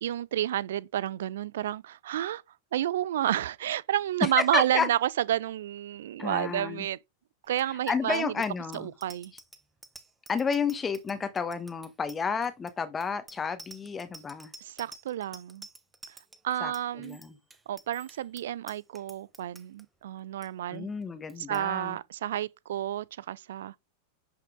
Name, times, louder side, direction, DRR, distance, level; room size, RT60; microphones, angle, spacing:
voice 1, 0.0-2.4 2.7-7.0 7.5-8.3 8.7-9.3 14.6-15.7 16.4-17.2 17.7-20.9 21.4-23.8, right 12 dB, 60° right, 0.4 m, -30 dB
voice 2, 4.2-4.9 6.2-6.9 7.9-8.9 10.3-14.5 16.6-16.7 17.0-17.3 20.7-22.0, left 5 dB, 15° left, 1.3 m, -31 dB
Bicycle bell, 7.5-19.8 20.2-20.5 20.7-21.0 21.3-21.6, right 3 dB, 10° right, 1.1 m, -50 dB
10.5 x 5.7 x 3.8 m
figure-of-eight pair, 90°, 0 cm